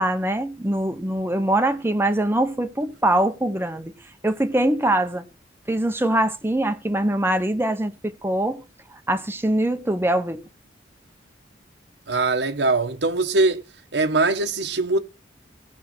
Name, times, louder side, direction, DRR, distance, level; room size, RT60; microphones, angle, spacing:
voice 1, 0.0-3.9 4.2-5.2 5.7-8.6 9.1-10.4, right 1 dB, 15° right, 0.8 m, -23 dB
voice 2, 12.1-13.6 13.9-15.0, right 3 dB, 80° right, 1.2 m, -21 dB
17.0 x 6.4 x 6.1 m
head